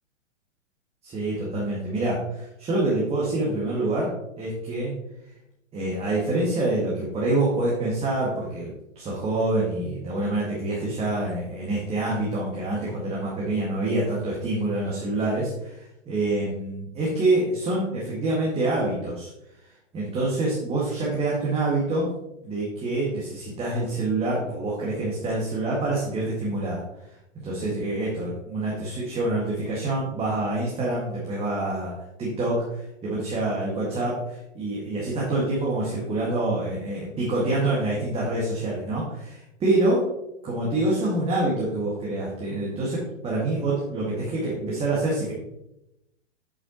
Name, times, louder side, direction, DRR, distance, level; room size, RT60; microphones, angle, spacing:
voice 1, 1.0-4.9 5.7-19.3 19.9-22.1 22.4-26.8 27.4-31.9 32.2-40.1 40.4-45.3, right 2 dB, 15° right, -5 dB, 1.8 m, -26 dB
8.4 x 7.8 x 2.9 m, 0.86 s
figure-of-eight pair, 110°, 38 cm